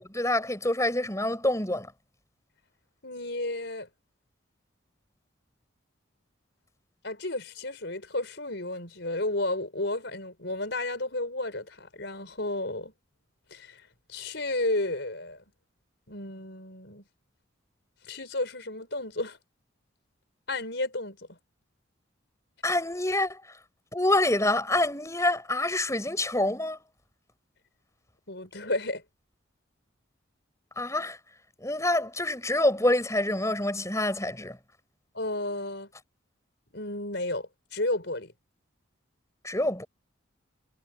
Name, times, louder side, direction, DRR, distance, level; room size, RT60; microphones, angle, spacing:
voice 1, 0.0-1.9 22.6-23.4 23.9-26.8 30.8-31.2 31.6-34.6 39.4-39.9, left 1 dB, 15° left, 5.4 m, -26 dB
voice 2, 3.0-3.9 7.0-12.9 13.5-13.8 14.1-15.4 16.1-17.0 18.1-19.4 20.5-21.4 28.3-29.0 35.1-35.9 36.7-38.3, left 2 dB, 60° left, 5.8 m, -32 dB
head